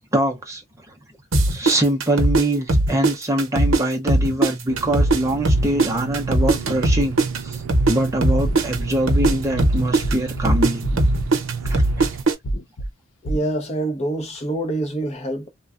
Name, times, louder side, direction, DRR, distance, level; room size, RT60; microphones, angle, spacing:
voice 1, 0.1-0.6 1.5-10.9 11.6-12.1, right 1 dB, 15° right, 0.6 m, -23 dB
sound 1, 1.3-3.8 4.1-12.3, right 2 dB, 65° right, 0.8 m, -19 dB
sound 2, 4.7-12.2, right 5 dB, 90° right, 0.4 m, -31 dB
sound 3, 8.4-8.8 9.2-9.6 10.0-10.5 10.8-11.3 11.6-12.1 12.4-12.9 13.2-13.4, right 1 dB, 75° left, 0.8 m, -26 dB
voice 2, 13.2-15.5, right 1 dB, 30° left, 0.8 m, -26 dB
3.2 x 2.2 x 2.4 m
head